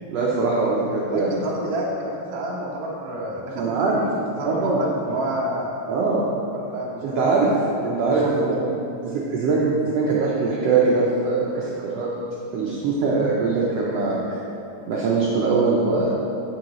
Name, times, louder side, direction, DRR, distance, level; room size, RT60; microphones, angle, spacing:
voice 1, 0.1-1.4 3.6-4.0 4.4-4.8 5.9-6.3 7.0-7.5 7.8-8.6 9.0-12.1 12.5-14.2 14.9-16.1, right 4 dB, 75° right, -5 dB, 1.5 m, -22 dB
voice 2, 1.1-5.8 6.6-7.2 8.1-8.4, right 1 dB, 50° right, -5 dB, 1.1 m, -29 dB
8.7 x 7.4 x 3.1 m, 2.8 s
omnidirectional pair, 3.6 m